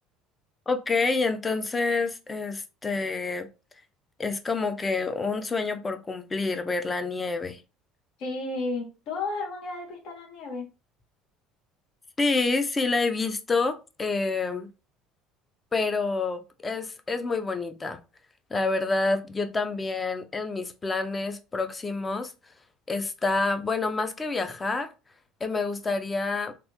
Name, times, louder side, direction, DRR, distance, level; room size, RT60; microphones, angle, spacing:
voice 1, 0.7-3.5 4.2-7.6 12.2-14.7 15.7-18.0 18.5-22.3 22.9-24.9 25.4-26.5, left 3 dB, 20° left, 0.5 m, -28 dB
voice 2, 8.2-10.6, left 3 dB, 65° left, 1.2 m, -33 dB
3.4 x 2.5 x 2.8 m
supercardioid pair, 110°, 0 cm